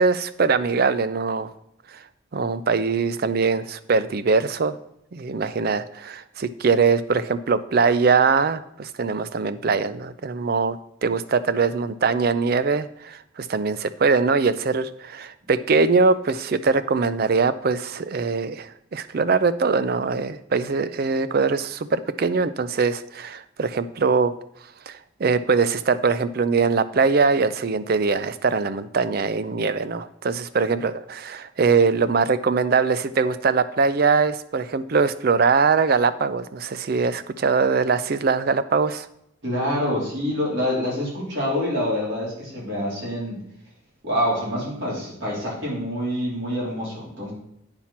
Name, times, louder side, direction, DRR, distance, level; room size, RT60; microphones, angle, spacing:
voice 1, 0.0-1.5 1.9-2.0 2.3-4.8 5.1-10.8 11.0-24.3 24.9-39.1, right 4 dB, 45° right, 14 dB, 0.4 m, -22 dB
voice 2, 39.4-43.4 44.0-47.3, equal, 65° right, -4 dB, 3.5 m, -26 dB
8.7 x 5.8 x 4.3 m, 0.75 s
head